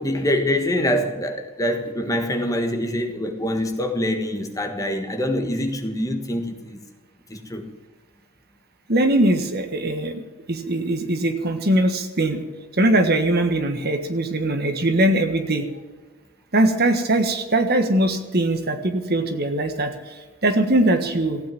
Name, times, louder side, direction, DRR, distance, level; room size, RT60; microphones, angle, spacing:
voice 1, 0.0-6.8 7.3-7.7, left 1 dB, 15° left, 5 dB, 1.5 m, -25 dB
voice 2, 8.9-10.2 10.5-12.4 12.7-15.7 16.5-21.4, right 1 dB, 45° right, 7 dB, 1.5 m, -21 dB
15.5 x 8.9 x 9.1 m, 1.3 s
head